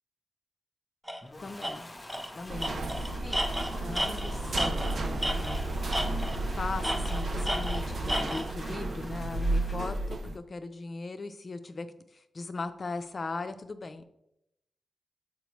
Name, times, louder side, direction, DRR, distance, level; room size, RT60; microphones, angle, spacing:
Tools, 1.1-1.2 1.6-1.7 2.1-2.3 2.6-5.6 5.9-6.4 6.8-8.5, equal, 10° right, 0.8 m, -32 dB
sound 1, 1.2-9.9, left 1 dB, 20° left, 0.8 m, -46 dB
voice 1, 1.4-1.9 2.3-2.8 3.2-3.4 3.8-5.8 6.6-14.1, left 3 dB, 50° left, 10 dB, 0.5 m, -39 dB
sound 2, 2.5-10.4, right 2 dB, 65° right, 0.6 m, -32 dB
6.8 x 5.0 x 3.1 m, 0.84 s
cardioid pair, 60°, 0 cm